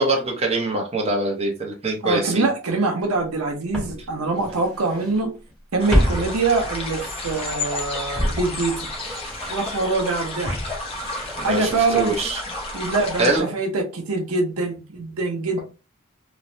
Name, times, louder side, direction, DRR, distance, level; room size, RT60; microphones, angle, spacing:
voice 1, 0.0-2.5 11.4-12.4 13.2-13.5, right 2 dB, 30° right, 0.7 m, -23 dB
voice 2, 2.0-5.3 5.7-8.9 9.5-10.5 11.4-12.1 12.7-15.6, right 3 dB, 80° right, 0.7 m, -24 dB
Walk footsteps, 3.0-3.1 3.7-5.2 5.5-7.7 8.1-12.2 12.5-12.6, equal, 5° left, 1.0 m, -28 dB
sound 1, 5.8-13.4, left 2 dB, 25° left, 0.7 m, -32 dB
3.1 x 2.1 x 2.6 m
head